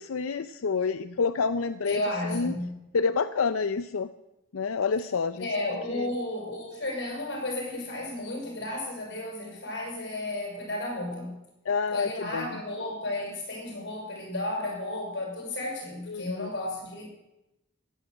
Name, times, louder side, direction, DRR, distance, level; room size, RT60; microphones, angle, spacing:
voice 1, 0.0-2.0 2.3-2.5 2.9-4.1 4.5-5.5 5.9-6.1 11.7-12.6 16.1-16.5, left 5 dB, 85° left, 11 dB, 0.5 m, -28 dB
voice 2, 1.8-2.7 5.4-11.3 11.9-17.1, left 1 dB, 55° left, 0 dB, 6.1 m, -33 dB
15.0 x 10.0 x 8.0 m, 0.92 s
head